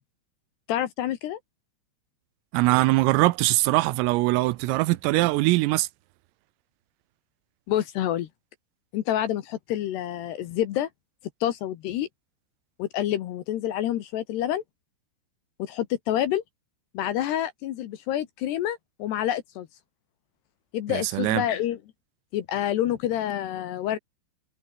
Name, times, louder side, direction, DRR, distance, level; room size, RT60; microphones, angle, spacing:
voice 1, 0.7-1.4 7.7-8.3 8.9-10.9 11.4-12.1 12.8-14.6 15.6-16.4 16.9-19.7 20.7-21.8 22.3-24.0, left 12 dB, 70° left, 2.9 m, -28 dB
voice 2, 2.5-5.9 20.9-21.5, right 20 dB, 85° right, 3.5 m, -22 dB
omnidirectional pair, 5.9 m